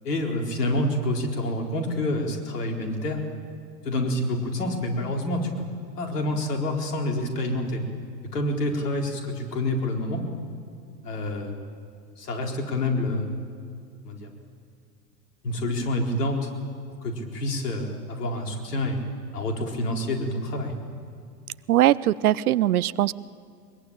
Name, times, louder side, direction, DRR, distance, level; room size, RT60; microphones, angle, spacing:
voice 1, 0.0-3.2 3.8-5.5 6.0-7.8 8.3-10.2 11.0-11.6 12.2-13.3 14.0-14.3 15.4-16.5 17.0-19.0 19.3-20.8, left 1 dB, 70° left, 2 dB, 4.4 m, -27 dB
voice 2, 21.7-23.1, right 13 dB, 65° right, 20 dB, 0.8 m, -21 dB
23.0 x 22.5 x 8.9 m, 2.3 s
figure-of-eight pair, 95°, 49 cm